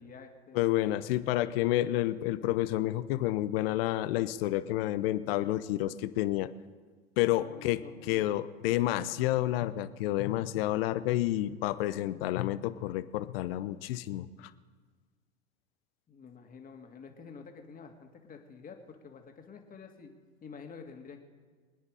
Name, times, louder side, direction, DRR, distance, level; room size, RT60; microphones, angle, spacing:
voice 1, 0.0-0.7 7.3-8.3 16.1-20.1 20.4-21.2, left 5 dB, 25° left, 3 dB, 2.4 m, -49 dB
voice 2, 0.5-6.5 7.2-7.8 8.1-14.5, left 15 dB, 65° left, 14 dB, 0.9 m, -29 dB
25.0 x 9.8 x 5.0 m, 1.5 s
hypercardioid pair, 90°, 32 cm